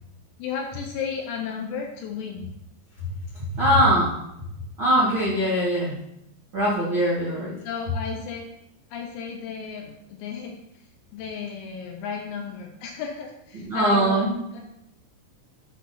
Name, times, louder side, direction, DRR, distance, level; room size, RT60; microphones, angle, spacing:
voice 1, 0.4-2.5 7.6-8.5 8.9-10.6 11.1-14.8, left 6 dB, 80° left, 1 dB, 2.8 m, -34 dB
voice 2, 3.5-4.1 4.8-6.0 6.5-7.5 13.5-14.3, equal, 65° right, -8 dB, 1.2 m, -21 dB
10.0 x 5.9 x 2.8 m, 0.80 s
omnidirectional pair, 5.6 m